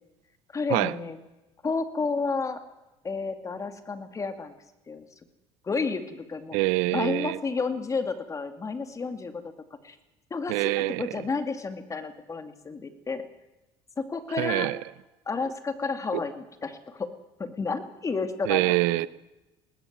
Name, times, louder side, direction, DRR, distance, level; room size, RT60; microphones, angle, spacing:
voice 1, 0.5-1.2 1.6-2.6 3.0-4.5 4.9-5.1 5.6-6.6 6.9-9.5 9.8-10.0 10.3-13.2 14.0-14.7 15.3-17.1 17.4-18.7 19.0-19.1, left 4 dB, 25° left, 2.4 m, -31 dB
voice 2, 6.5-7.4 10.5-11.1 14.4-14.8 18.5-19.1, right 20 dB, 80° right, 0.7 m, -25 dB
20.5 x 19.0 x 7.4 m
supercardioid pair, 105°, 13 cm